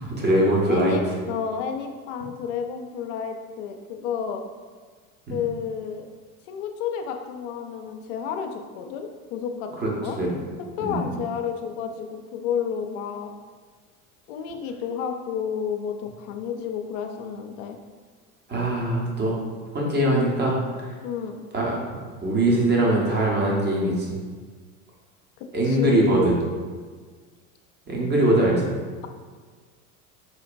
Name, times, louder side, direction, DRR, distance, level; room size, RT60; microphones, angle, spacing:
voice 1, 0.0-0.9 5.3-5.4 9.8-9.9 10.2-10.3 10.8-11.0 18.5-19.4 19.7-20.9 21.5-21.8 22.2-24.2 25.5-26.4 27.9-28.7, right 1 dB, 25° right, -3 dB, 1.1 m, -22 dB
voice 2, 0.7-4.4 5.3-6.1 6.5-10.2 10.6-13.3 14.3-17.8 21.0-21.4 25.4-26.1, left 7 dB, 60° left, 5 dB, 0.6 m, -31 dB
4.5 x 2.8 x 2.5 m, 1.6 s
hypercardioid pair, 90°, 44 cm